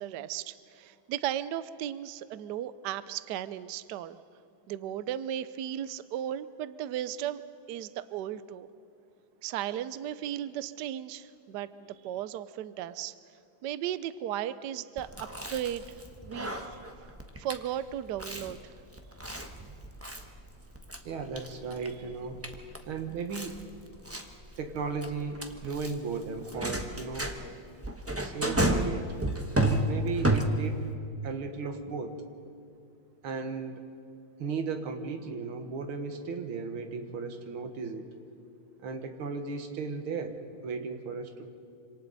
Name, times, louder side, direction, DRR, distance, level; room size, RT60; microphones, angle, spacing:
voice 1, 0.0-4.2 4.7-8.7 9.4-11.7 12.0-13.1 13.6-15.9 16.2-17.1 17.4-18.7, right 11 dB, 70° right, 14 dB, 1.1 m, -36 dB
Chewing mastication, 15.0-30.9, right 1 dB, 10° right, 0.6 m, -33 dB
voice 2, 21.0-22.4 22.8-23.6 24.6-27.3 28.2-29.1 29.7-30.9 31.2-32.2 33.2-33.8 34.4-38.1 38.8-40.4 40.6-41.5, right 4 dB, 90° right, 6 dB, 2.2 m, -36 dB
27.0 x 26.5 x 4.1 m, 2.5 s
omnidirectional pair, 2.2 m